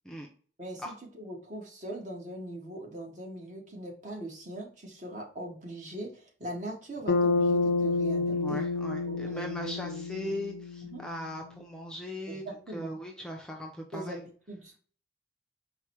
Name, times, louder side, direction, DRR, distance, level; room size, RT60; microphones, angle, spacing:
voice 1, 0.6-8.7 9.0-10.3 10.9-11.0 12.3-13.0 13.9-14.8, right 1 dB, 45° right, 0 dB, 1.2 m, -41 dB
Bass guitar, 7.1-11.4, left 3 dB, 70° left, 0.5 m, -29 dB
voice 2, 8.3-12.4 12.7-14.2, left 1 dB, 5° left, 0 dB, 0.5 m, -39 dB
4.6 x 2.1 x 4.3 m, 0.43 s
head